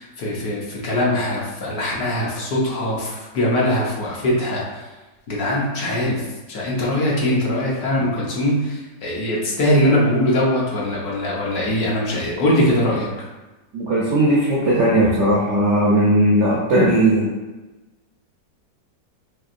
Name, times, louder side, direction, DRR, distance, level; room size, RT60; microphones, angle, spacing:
voice 1, 0.0-4.6 5.3-6.2 6.5-13.1, left 1 dB, 65° left, -4 dB, 1.1 m, -21 dB
voice 2, 13.7-17.3, right 1 dB, 75° right, -5 dB, 0.6 m, -17 dB
4.4 x 2.8 x 2.5 m, 1.1 s
omnidirectional pair, 2.0 m